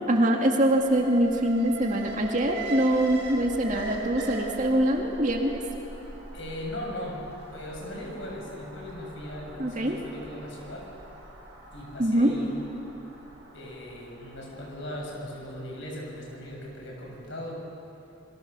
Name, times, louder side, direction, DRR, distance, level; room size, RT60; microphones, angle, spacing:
voice 1, 0.1-5.6 9.6-10.0 12.0-12.3, right 1 dB, 35° right, 1 dB, 2.2 m, -24 dB
Alarm, 0.7-16.8 17.1-17.2, right 1 dB, 55° right, 6.8 m, -41 dB
voice 2, 6.3-7.2 7.5-10.9 11.7-12.5 13.5-17.7, left 1 dB, 60° left, -1 dB, 7.0 m, -38 dB
28.5 x 22.0 x 6.9 m, 2.9 s
head